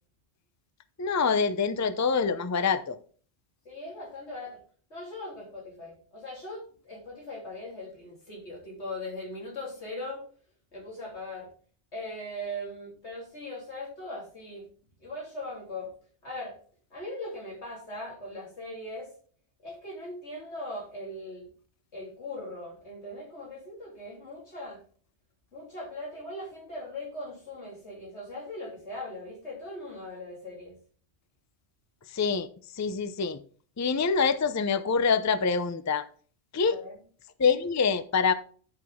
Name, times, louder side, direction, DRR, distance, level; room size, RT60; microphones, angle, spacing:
voice 1, 1.0-3.0 32.1-32.5 32.7-33.4 33.8-36.1 36.5-36.8 37.4-38.3, left 5 dB, 25° left, 0.4 m, -25 dB
voice 2, 3.7-4.6 4.9-10.2 10.7-11.5 11.9-14.7 15.0-15.9 16.2-16.6 16.9-19.1 19.6-21.5 21.9-24.8 25.5-30.7 36.6-36.9, left 1 dB, 85° left, 3.7 m, -39 dB
10.5 x 6.0 x 3.6 m
omnidirectional pair, 1.1 m